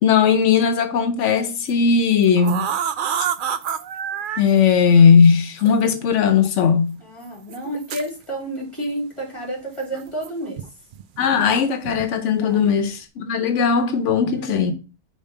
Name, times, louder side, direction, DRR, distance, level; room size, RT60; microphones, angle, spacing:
voice 1, 0.0-2.7 4.4-7.0 11.2-14.7, left 6 dB, 90° left, 1.0 m, -17 dB
sound 1, 1.5-1.7 2.2-4.4 5.6-5.7 6.4-6.5 7.5-8.1 9.9-10.7 10.9-11.3 11.8-12.1 12.5-12.8, right 8 dB, 60° right, 0.6 m, -28 dB
voice 2, 7.0-10.6 12.4-12.7 14.2-14.7, right 1 dB, 25° left, 2.7 m, -30 dB
5.1 x 3.4 x 5.4 m
omnidirectional pair, 1.2 m